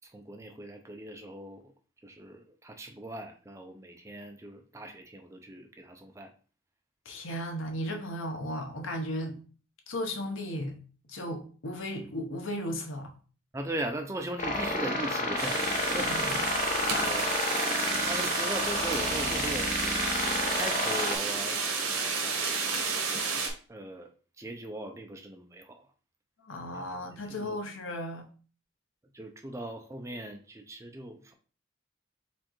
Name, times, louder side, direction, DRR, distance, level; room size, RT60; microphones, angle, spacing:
voice 1, 0.0-1.7 2.0-6.3 13.5-16.2 17.0-17.3 18.1-19.7 20.5-22.7 23.7-25.9 27.3-27.6 29.1-31.3, right 1 dB, 15° right, 0.4 m, -39 dB
voice 2, 7.0-9.4 9.9-10.8 11.1-13.1 16.0-16.3 16.9-17.2 17.8-18.0 26.4-28.2, equal, 75° left, 0.8 m, -35 dB
sound 1, 14.4-21.2, left 2 dB, 35° left, 0.6 m, -30 dB
sound 2, 15.4-23.5, right 4 dB, 80° right, 1.1 m, -31 dB
4.3 x 3.7 x 3.0 m
head